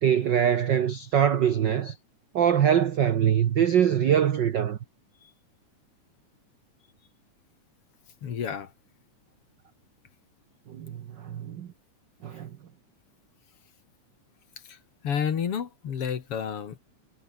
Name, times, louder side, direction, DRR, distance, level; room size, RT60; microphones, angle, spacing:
voice 1, 0.0-2.0 2.3-4.8 10.7-11.7 12.2-12.5, right 9 dB, 75° right, 1.0 m, -23 dB
voice 2, 8.2-8.7 14.7-14.8 15.0-16.8, left 7 dB, 50° left, 2.6 m, -30 dB
omnidirectional pair, 3.4 m